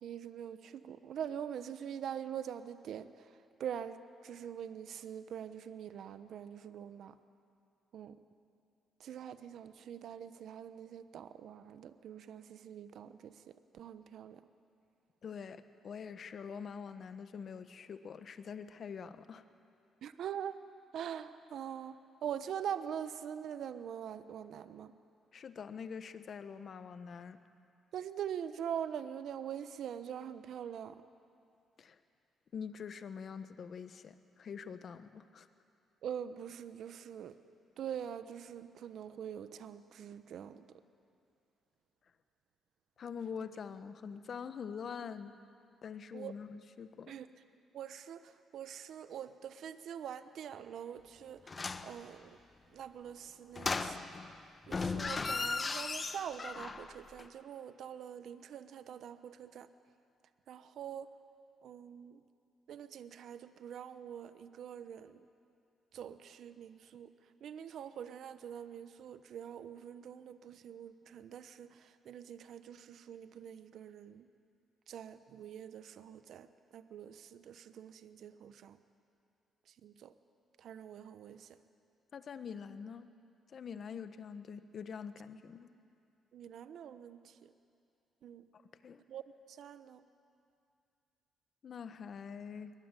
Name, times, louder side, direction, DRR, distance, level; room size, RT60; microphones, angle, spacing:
voice 1, 0.0-3.1 3.6-4.0 4.2-7.1 7.9-8.2 9.0-13.3 13.7-14.4 20.0-20.6 20.9-21.9 22.2-24.9 27.9-31.0 36.0-37.3 37.8-40.6 46.1-46.3 47.1-47.3 47.7-52.3 52.7-54.0 54.7-59.7 60.5-61.1 61.6-62.2 62.7-65.2 65.9-67.1 67.4-74.3 74.9-76.5 76.7-78.8 79.8-80.1 80.6-81.5 86.3-87.5 88.2-88.4 89.1-89.2 89.5-90.0, right 9 dB, 70° right, 11 dB, 1.0 m, -44 dB
voice 2, 15.2-19.4 25.3-27.4 31.8-32.0 32.5-35.5 43.0-45.3 45.8-47.2 82.1-83.1 83.5-85.7 88.8-89.0 91.6-92.7, left 6 dB, 55° left, 10 dB, 1.3 m, -45 dB
sound 1, 51.5-51.9 53.5-54.3 54.7-56.9 57.2-57.3, left 4 dB, 30° left, 1.1 m, -36 dB
23.0 x 20.5 x 9.2 m, 2.5 s
cardioid pair, 90°, 0 cm